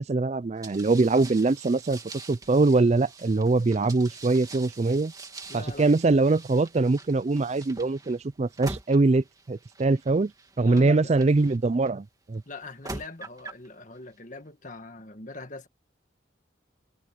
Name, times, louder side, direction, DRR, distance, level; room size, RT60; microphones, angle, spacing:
voice 1, 0.0-2.0 2.3-5.1 5.5-10.3 10.6-12.4, right 3 dB, 35° right, 0.4 m, -23 dB
sound 1, 0.6-11.9 12.6-13.7, right 3 dB, 20° right, 2.1 m, -44 dB
voice 2, 5.5-5.9 10.6-11.1 12.5-15.7, left 3 dB, 40° left, 1.9 m, -42 dB
head